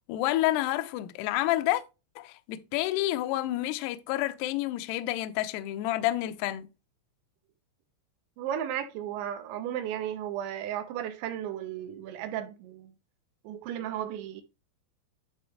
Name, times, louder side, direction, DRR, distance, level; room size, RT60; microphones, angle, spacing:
voice 1, 0.1-1.8 2.2-6.7, left 15 dB, 85° left, 2.4 m, -29 dB
voice 2, 8.4-12.9 13.4-14.4, right 10 dB, 75° right, 2.8 m, -34 dB
11.5 x 4.6 x 3.2 m
omnidirectional pair, 5.8 m